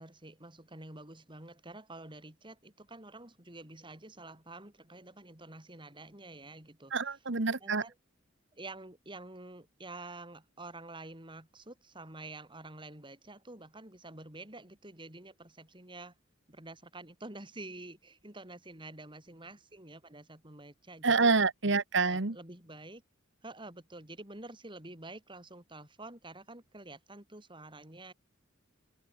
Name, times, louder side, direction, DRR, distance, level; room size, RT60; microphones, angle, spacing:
voice 1, 0.0-7.2 7.6-7.9 8.5-16.1 16.5-21.3 21.9-23.0 23.4-28.1, right 2 dB, 25° right, 4.5 m, -48 dB
voice 2, 6.9-7.8 21.0-22.4, right 4 dB, 60° right, 1.3 m, -27 dB
open air
head